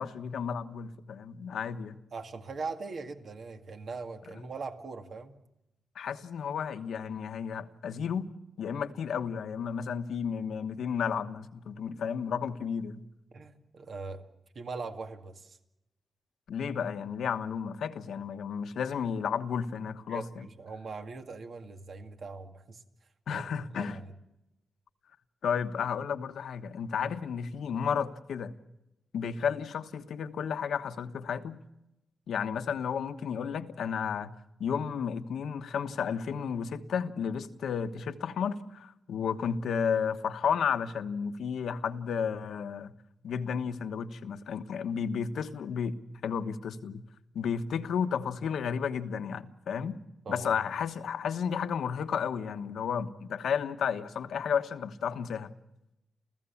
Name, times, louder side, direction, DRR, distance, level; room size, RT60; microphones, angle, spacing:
voice 1, 0.0-2.0 5.9-8.3 8.6-13.0 16.5-20.5 23.3-24.0 25.4-28.5 29.1-31.6 32.3-34.3 34.6-42.9 43.2-45.9 46.2-47.0 47.3-50.0 50.3-55.5, left 7 dB, 85° left, 1.2 m, -32 dB
voice 2, 2.1-5.4 13.3-14.3 14.5-15.6 20.1-22.8 23.3-23.4 23.7-24.1 50.3-50.6, right 4 dB, 60° right, 2.1 m, -41 dB
29.5 x 15.0 x 7.2 m
cardioid pair, 100°, 0 cm